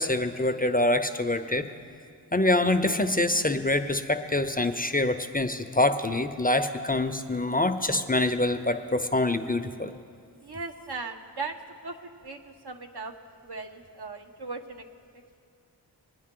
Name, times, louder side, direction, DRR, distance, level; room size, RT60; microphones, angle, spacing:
voice 1, 0.0-1.7 2.3-9.9, left 2 dB, 20° left, 8 dB, 0.6 m, -25 dB
voice 2, 10.4-11.6 11.8-13.1 13.4-14.8, right 4 dB, 65° right, 5 dB, 1.0 m, -38 dB
22.0 x 9.4 x 3.8 m, 2.3 s
cardioid pair, 45°, 43 cm